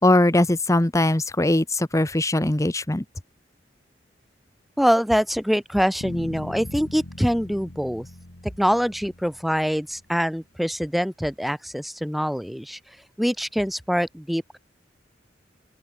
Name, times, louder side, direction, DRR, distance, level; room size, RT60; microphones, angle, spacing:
voice 1, 0.0-3.0, left 1 dB, 15° left, 1.0 m, -20 dB
voice 2, 4.8-8.1 8.4-12.8 13.2-14.6, equal, ahead, 1.1 m, -24 dB
sound 1, 6.0-10.1, left 1 dB, 85° left, 2.4 m, -40 dB
open air
head